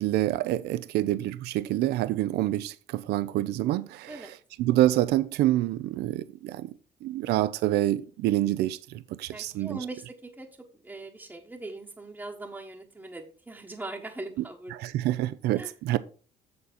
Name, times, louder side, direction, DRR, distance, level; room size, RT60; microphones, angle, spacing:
voice 1, 0.0-4.1 4.6-6.7 7.0-9.9 14.7-16.0, right 14 dB, 75° right, 0.5 m, -27 dB
voice 2, 9.3-10.5 10.8-14.7 15.5-15.7, right 2 dB, 10° right, 1.0 m, -41 dB
7.1 x 6.8 x 4.2 m
cardioid pair, 110°, 17 cm